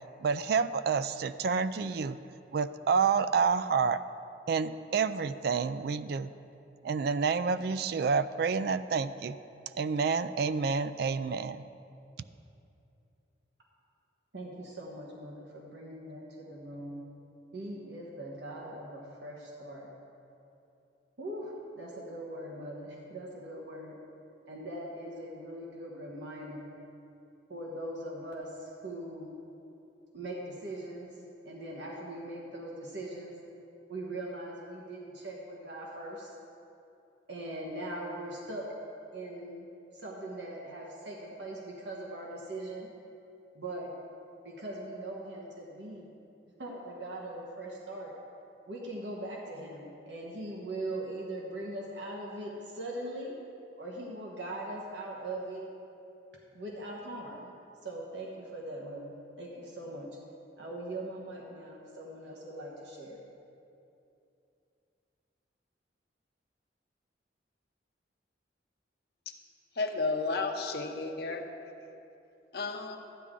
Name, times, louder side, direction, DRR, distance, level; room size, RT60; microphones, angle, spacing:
voice 1, 0.2-2.2 2.5-4.0 4.5-6.3 6.8-9.4 9.7-11.6, right 5 dB, 60° right, 14 dB, 0.3 m, -29 dB
voice 2, 14.3-17.0 17.5-19.9 21.2-24.0 24.5-26.7 27.5-29.3 30.1-33.3 33.9-36.4 37.3-38.7 39.1-39.7 39.9-42.9 43.5-43.9 44.4-46.1 46.6-48.1 48.7-53.3 53.8-55.6 56.5-57.5 57.8-60.2 60.6-63.2, right 1 dB, 80° right, -2 dB, 1.2 m, -41 dB
voice 3, 69.7-71.4 72.5-73.0, left 3 dB, 60° left, 4 dB, 0.8 m, -32 dB
12.5 x 9.3 x 3.7 m, 2.7 s
head